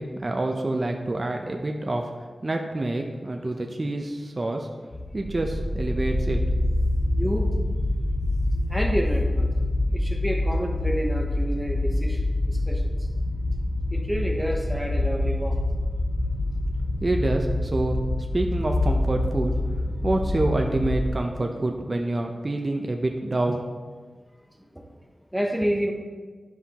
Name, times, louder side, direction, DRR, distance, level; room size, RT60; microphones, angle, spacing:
voice 1, 0.0-2.1 2.4-4.7 5.1-6.4 17.0-18.0 18.3-19.5 20.0-23.7, right 2 dB, 35° right, 2 dB, 0.6 m, -27 dB
sound 1, 4.9-21.1, left 1 dB, 50° left, 1.6 m, -26 dB
voice 2, 7.2-7.5 8.7-9.5 9.9-12.9 13.9-15.6 19.9-20.1 21.4-21.7 24.7-24.8 25.3-25.9, equal, ahead, 1 dB, 0.9 m, -29 dB
10.5 x 5.5 x 2.9 m, 1.4 s
wide cardioid pair, 90°, 0 cm